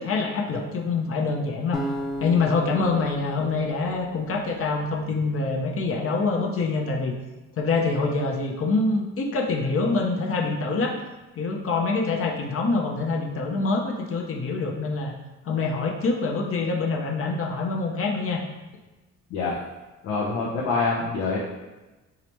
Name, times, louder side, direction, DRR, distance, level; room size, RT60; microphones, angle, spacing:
voice 1, 0.0-1.8 2.2-7.2 7.6-11.0 11.4-15.1 15.4-18.4, left 3 dB, 50° left, 0 dB, 0.6 m, -25 dB
sound 1, 1.7-4.9, right 1 dB, ahead, 0.6 m, -35 dB
voice 2, 20.0-21.4, left 4 dB, 90° left, -4 dB, 0.6 m, -25 dB
4.8 x 2.0 x 2.9 m, 1.1 s
cardioid pair, 90°, 30 cm